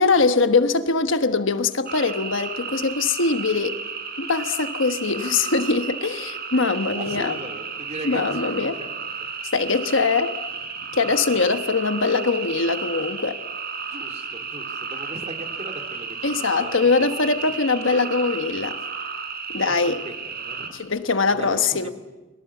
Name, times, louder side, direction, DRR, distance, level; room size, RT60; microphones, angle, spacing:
voice 1, 0.0-3.8 4.2-7.3 8.0-8.7 9.5-10.4 10.9-13.4 16.2-18.8 19.5-20.0 20.8-21.9, left 4 dB, 70° left, 1.3 m, -22 dB
sound 1, 1.9-20.7, right 5 dB, 50° right, 4.6 m, -33 dB
voice 2, 7.0-8.9 10.8-11.0 13.9-16.7 17.2-17.5 19.5-20.1 20.4-20.7 21.3-21.9, right 1 dB, 35° right, 3.4 m, -38 dB
30.0 x 23.0 x 7.2 m
head